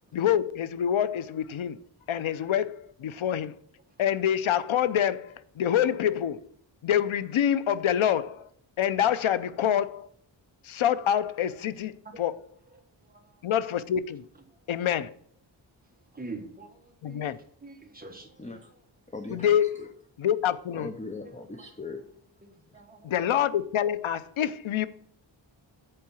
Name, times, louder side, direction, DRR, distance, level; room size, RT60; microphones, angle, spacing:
voice 1, 0.1-1.8 2.1-3.6 4.0-6.4 6.8-8.5 8.8-10.1 10.6-12.5 13.4-14.2 14.7-15.1 17.0-17.4 19.3-19.9 20.2-20.9 23.0-24.9, left 10 dB, 90° left, 0.7 m, -26 dB
voice 2, 16.1-16.7 17.1-17.3 17.6-18.3 22.7-23.1, right 3 dB, 20° right, 1.3 m, -42 dB
voice 3, 18.2-18.7 19.1-19.9 20.7-22.1 22.6-22.8, left 3 dB, 15° left, 0.6 m, -40 dB
7.8 x 4.7 x 7.0 m
wide cardioid pair, 170°, 47 cm